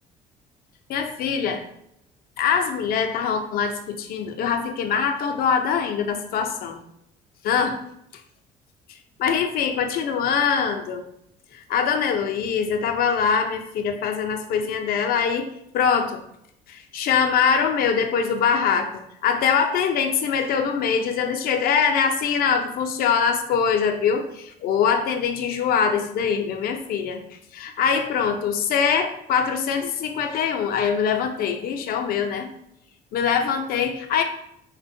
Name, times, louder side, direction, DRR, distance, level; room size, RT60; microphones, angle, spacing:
voice 1, 0.9-1.6 2.4-6.8 7.4-7.8 9.2-11.0 11.5-16.2 16.7-18.9 19.2-27.2 27.5-32.5 33.1-34.2, left 6 dB, 60° left, 5 dB, 0.4 m, -23 dB
3.5 x 2.1 x 2.6 m, 0.76 s
cardioid pair, 110°, 17 cm